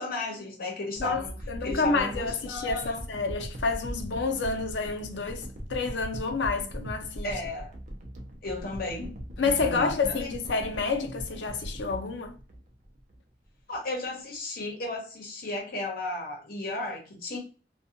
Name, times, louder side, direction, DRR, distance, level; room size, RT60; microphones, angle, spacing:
voice 1, 0.0-1.4 1.6-3.0 7.2-7.7 8.4-9.2 9.4-10.3 13.7-17.4, left 2 dB, 55° left, 0.9 m, -34 dB
voice 2, 1.0-7.3 9.4-12.3, left 4 dB, 90° left, 0.5 m, -29 dB
sound 1, 1.0-13.2 13.7-13.8, equal, 45° right, 0.5 m, -40 dB
2.6 x 2.2 x 2.4 m
head